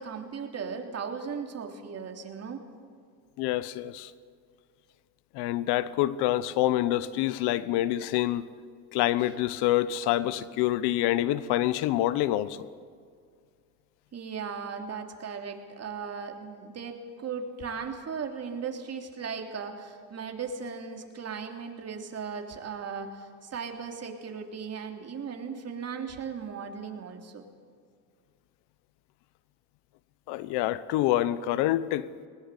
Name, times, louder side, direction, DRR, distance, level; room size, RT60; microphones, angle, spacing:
voice 1, 0.0-2.6 14.1-27.5, right 6 dB, 40° right, 3.2 m, -37 dB
voice 2, 3.4-4.1 5.3-8.5 8.9-12.6 30.3-32.1, left 14 dB, 75° left, 1.0 m, -26 dB
21.0 x 20.0 x 8.4 m
cardioid pair, 110°, 40 cm